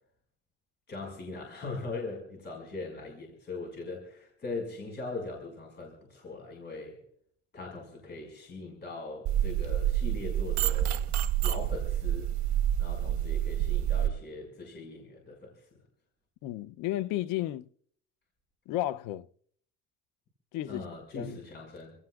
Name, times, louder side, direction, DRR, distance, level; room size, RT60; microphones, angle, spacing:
voice 1, 0.9-7.0 7.5-11.1 11.4-12.3 12.8-15.7 20.7-21.9, left 3 dB, 35° left, 5.8 m, -40 dB
sound 1, 9.3-14.1, right 11 dB, 70° right, 1.2 m, -28 dB
voice 2, 16.4-17.7 18.7-19.3 20.5-20.8 21.1-21.4, left 14 dB, 85° left, 0.7 m, -33 dB
29.0 x 17.5 x 2.4 m
cardioid pair, 125°, 30 cm